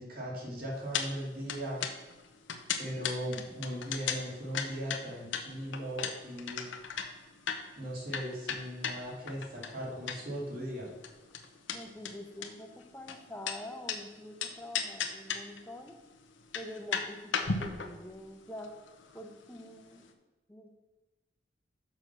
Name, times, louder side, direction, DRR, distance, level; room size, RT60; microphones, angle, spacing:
voice 1, 0.0-1.8 2.8-6.7 7.8-10.9, equal, 50° right, -3 dB, 2.7 m, -38 dB
sound 1, 0.9-1.1 1.3-10.4 10.7-14.0 14.4-15.6 15.9-16.0 16.4-19.7 20.0-20.1, left 6 dB, 90° left, 0.9 m, -36 dB
voice 2, 11.7-16.0 16.5-18.8 19.1-20.0 20.5-20.7, left 1 dB, 10° left, 5 dB, 0.7 m, -46 dB
6.8 x 6.0 x 6.1 m, 1.1 s
head